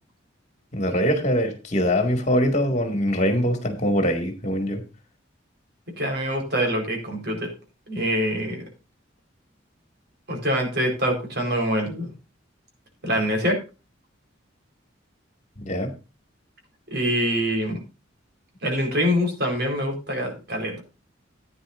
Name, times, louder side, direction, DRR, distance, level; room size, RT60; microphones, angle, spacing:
voice 1, 0.7-4.8 15.6-15.9, equal, 40° left, 5 dB, 2.2 m, -23 dB
voice 2, 6.0-7.5 7.9-8.6 10.3-12.1 13.0-13.6 16.9-17.8 18.6-20.8, equal, 55° right, 2 dB, 4.4 m, -25 dB
15.0 x 9.5 x 2.6 m, 0.30 s
head